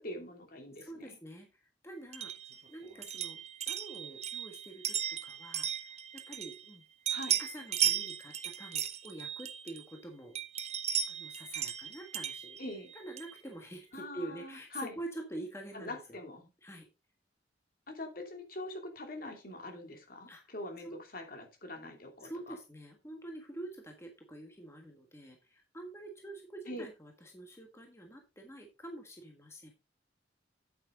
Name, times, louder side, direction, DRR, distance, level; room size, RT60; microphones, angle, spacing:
voice 1, 0.0-1.2 7.1-7.4 12.6-12.9 13.9-14.9 15.7-16.5 17.9-22.5 26.7-26.8, left 1 dB, 50° left, 4 dB, 2.6 m, -43 dB
voice 2, 0.8-2.3 2.7-3.4 3.7-6.8 7.4-10.4 11.1-12.6 12.9-16.2 16.6-16.9 19.2-19.3 20.3-20.4 20.8-21.0 22.2-29.7, right 1 dB, 15° left, 3 dB, 1.5 m, -47 dB
sound 1, 2.1-6.8 7.1-10.0 10.4-13.4, right 9 dB, 35° right, 0.8 m, -36 dB
8.7 x 8.6 x 3.8 m, 0.28 s
head